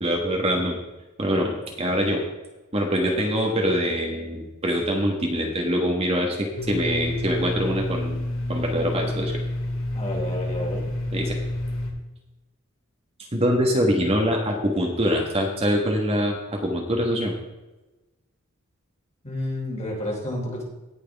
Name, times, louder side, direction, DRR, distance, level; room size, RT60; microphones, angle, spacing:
voice 1, 0.0-0.8 1.2-2.2 2.7-8.2 8.5-9.3 11.1-11.4 13.3-17.3, equal, 30° right, 1 dB, 1.5 m, -24 dB
voice 2, 2.9-3.3 9.9-10.9 19.2-20.6, left 1 dB, 30° left, -2 dB, 3.2 m, -30 dB
Domestic sounds home sounds, 6.6-11.9, left 1 dB, 65° left, 2.2 m, -29 dB
18.0 x 6.3 x 3.5 m, 1.1 s
head